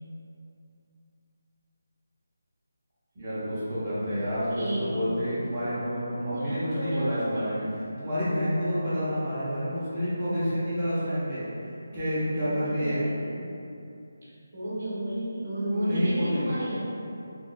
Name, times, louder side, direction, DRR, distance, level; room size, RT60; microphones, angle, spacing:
voice 1, 3.1-7.6 8.0-11.4 11.9-13.0 15.7-16.6, equal, 25° right, -12 dB, 0.6 m, -29 dB
voice 2, 3.8-4.2 4.5-5.2 6.3-7.5 11.9-12.0 12.3-13.3 14.5-16.8, right 1 dB, 45° right, -9 dB, 0.9 m, -32 dB
3.5 x 2.3 x 2.3 m, 2.7 s
figure-of-eight pair, 175°, 0 cm